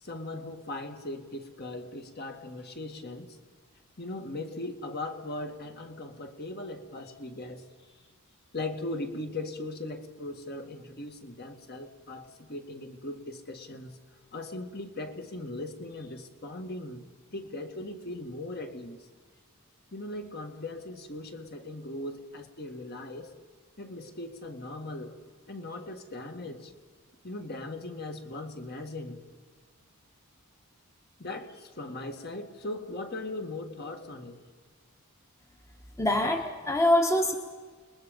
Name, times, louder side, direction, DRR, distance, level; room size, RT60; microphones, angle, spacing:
voice 1, 0.0-3.4 4.0-7.6 8.5-14.0 14.3-17.0 17.3-19.0 19.9-23.3 23.8-25.2 25.5-26.7 27.2-29.2 31.2-34.4, left 2 dB, 45° left, 5 dB, 1.9 m, -39 dB
voice 2, 36.0-37.3, left 1 dB, 15° left, 4 dB, 1.3 m, -24 dB
29.5 x 21.0 x 5.3 m, 1.5 s
head